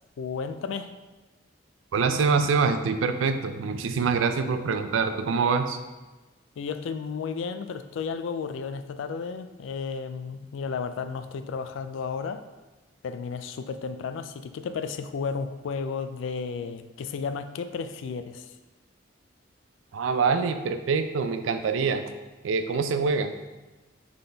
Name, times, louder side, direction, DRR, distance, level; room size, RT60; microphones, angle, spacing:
voice 1, 0.2-0.9 6.6-12.4 13.0-18.6, left 5 dB, 75° left, 10 dB, 0.3 m, -33 dB
voice 2, 1.9-5.8 19.9-22.0 22.4-23.3, right 5 dB, 80° right, 9 dB, 0.4 m, -25 dB
3.9 x 3.7 x 3.4 m, 1.2 s
head